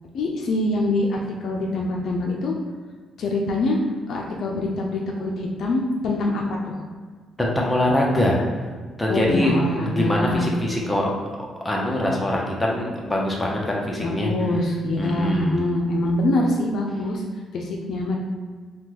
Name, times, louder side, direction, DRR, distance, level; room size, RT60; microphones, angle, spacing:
voice 1, 0.1-2.5 3.2-3.8 4.1-6.8 9.1-10.5 14.0-17.2 17.5-18.2, left 1 dB, 65° left, 0 dB, 0.4 m, -24 dB
voice 2, 7.4-8.4 9.0-9.5 9.8-11.1 11.6-14.3 15.0-15.6, left 1 dB, 10° left, -2 dB, 0.7 m, -23 dB
3.5 x 2.2 x 2.9 m, 1.5 s
cardioid pair, 90°, 0 cm